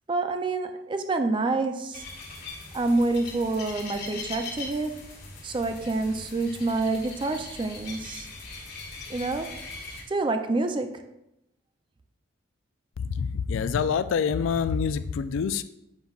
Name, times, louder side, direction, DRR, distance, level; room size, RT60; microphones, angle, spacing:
voice 1, 0.1-2.0 2.7-5.0 5.4-8.3 9.1-9.5 10.1-11.1, right 3 dB, 25° right, 7 dB, 0.4 m, -27 dB
sound 1, 1.9-10.0, left 3 dB, 55° left, 1.6 m, -41 dB
voice 2, 13.0-15.6, left 6 dB, 75° left, 13 dB, 0.3 m, -26 dB
7.5 x 5.4 x 2.3 m, 0.88 s
head